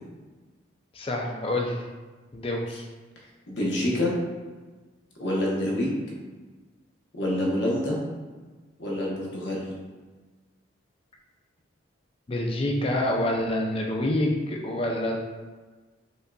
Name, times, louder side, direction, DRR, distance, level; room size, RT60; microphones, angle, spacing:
voice 1, 0.9-1.8 2.3-2.8 12.3-15.2, left 1 dB, 30° left, 0 dB, 0.4 m, -27 dB
voice 2, 3.5-4.1 5.2-6.0 7.1-8.0 8.8-9.7, left 1 dB, 65° left, -4 dB, 0.9 m, -26 dB
5.0 x 2.6 x 2.3 m, 1.3 s
head